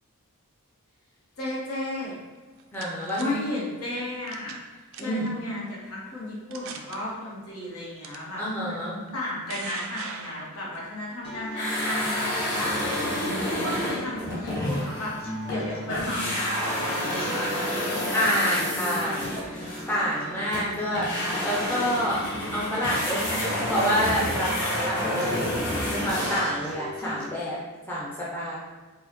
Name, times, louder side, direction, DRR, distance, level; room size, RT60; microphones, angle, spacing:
voice 1, 1.4-2.1 3.2-4.5 5.0-8.8 9.1-15.1 15.5-17.5, left 1 dB, 80° left, -5 dB, 1.0 m, -34 dB
sound 1, 2.4-3.3 4.3-4.7 4.9-5.3 5.9-6.0 6.5-7.0 8.0-8.2 9.1-10.9, right 6 dB, 60° right, 0.4 m, -39 dB
voice 2, 2.7-3.4 5.0-5.3 8.4-9.0 18.1-21.1 21.4-22.3 22.5-25.5 25.9-27.6 27.9-28.6, equal, 10° left, -7 dB, 0.5 m, -28 dB
sound 2, 11.2-27.3, equal, 25° left, 1.0 m, -39 dB
sound 3, 11.5-15.6 15.9-26.7, left 1 dB, 50° left, 1.4 m, -29 dB
5.3 x 2.0 x 2.9 m, 1.3 s
head